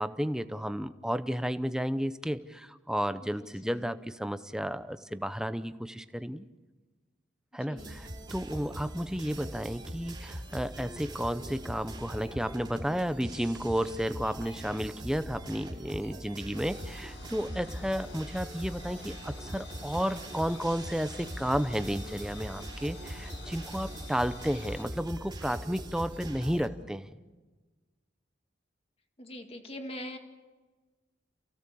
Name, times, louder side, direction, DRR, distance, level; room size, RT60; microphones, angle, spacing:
voice 1, 0.0-6.5 7.5-27.1, equal, 5° right, 11 dB, 0.7 m, -32 dB
voice 2, 3.2-4.0 7.7-8.0 16.5-16.7 29.2-30.2, left 1 dB, 30° left, 5 dB, 2.1 m, -43 dB
sound 1, 7.8-26.7, right 1 dB, 25° right, 2.9 m, -42 dB
sound 2, 16.6-24.9, left 3 dB, 70° left, 4.4 m, -48 dB
28.5 x 16.5 x 7.0 m, 1.3 s
head